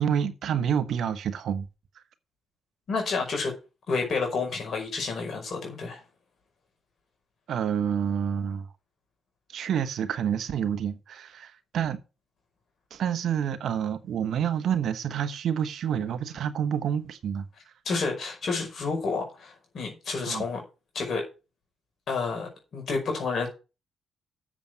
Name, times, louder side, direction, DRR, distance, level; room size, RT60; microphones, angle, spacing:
voice 1, 0.0-1.7 7.5-8.7 9.5-12.0 12.9-17.4 20.2-20.4, right 8 dB, 70° right, 1.2 m, -28 dB
voice 2, 2.9-3.5 3.9-6.0 17.9-20.6 20.9-21.2 22.1-23.5, left 4 dB, 60° left, 5.2 m, -30 dB
7.4 x 7.2 x 7.7 m
supercardioid pair, 60°, 0 cm